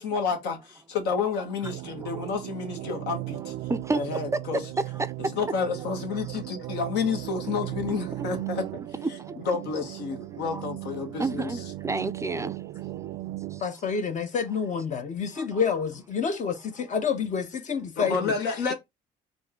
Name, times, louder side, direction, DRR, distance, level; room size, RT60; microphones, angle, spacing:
voice 1, 0.0-3.5 3.9-4.6 5.2-8.6 9.5-11.5 18.0-18.7, left 5 dB, 80° left, 1.5 m, -30 dB
sound 1, 1.6-13.6, right 16 dB, 70° right, 0.4 m, -37 dB
voice 2, 3.7-4.2 4.9-5.3 8.2-8.3 9.0-9.4 10.5-10.6 11.2-12.6 13.5-13.6 15.3-15.6, right 3 dB, 15° right, 0.4 m, -31 dB
voice 3, 13.6-18.3, left 6 dB, 45° left, 0.8 m, -28 dB
4.4 x 2.6 x 4.3 m
cardioid pair, 110°, 17 cm